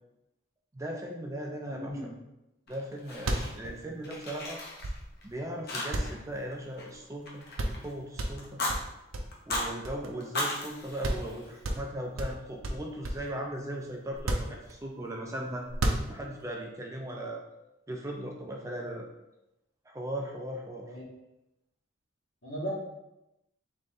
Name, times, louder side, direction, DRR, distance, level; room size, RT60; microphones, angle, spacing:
voice 1, 0.7-1.9 2.7-4.6 5.2-7.4 7.8-8.6 9.5-15.6 16.1-17.4 17.9-19.1 19.9-20.9, right 1 dB, 15° right, 0 dB, 0.5 m, -38 dB
voice 2, 1.7-2.1 20.9-21.0 22.4-22.7, right 1 dB, 75° left, -5 dB, 1.5 m, -36 dB
Fire, 2.7-3.8 4.0-5.3 5.7-6.2 6.5-7.9 8.4-8.8 9.3-9.7 10.2-11.8, left 1 dB, 50° left, 0.9 m, -36 dB
sound 1, 2.8-2.9 3.1-5.3 5.9-7.0 7.2-7.3 7.6-7.9 8.2-10.3 10.7-10.8 11.0-11.3 11.6-13.3 14.1-15.1 15.6-16.5, right 1 dB, 85° right, 0.6 m, -33 dB
3.9 x 3.2 x 3.7 m, 0.91 s
head